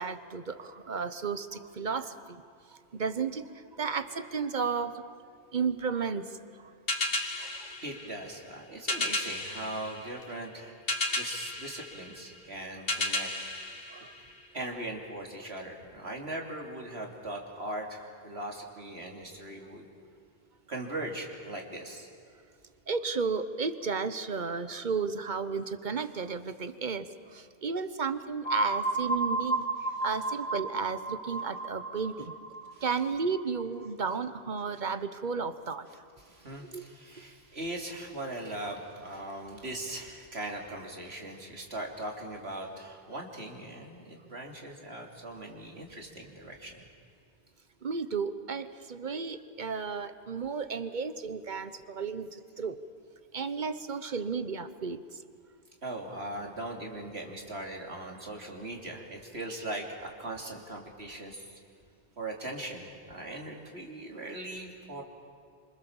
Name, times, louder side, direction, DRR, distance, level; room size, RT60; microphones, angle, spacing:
voice 1, 0.0-2.4 2.7-5.1 5.5-6.4 7.4-7.7 13.9-14.2 22.9-29.6 30.0-32.3 32.8-35.9 36.6-36.8 47.8-52.8 53.3-55.2, right 5 dB, 45° right, 12 dB, 1.2 m, -33 dB
sound 1, 6.9-14.7, left 2 dB, 60° left, 1.9 m, -34 dB
voice 2, 7.8-10.8 11.1-13.3 14.5-19.9 20.7-22.1 32.7-32.8 36.2-46.9 55.8-61.6 62.2-65.0, right 1 dB, 70° right, 1 dB, 3.4 m, -40 dB
sound 2, 28.4-34.1, right 2 dB, 45° left, 3.2 m, -33 dB
28.0 x 25.5 x 7.3 m, 2.4 s
omnidirectional pair, 1.1 m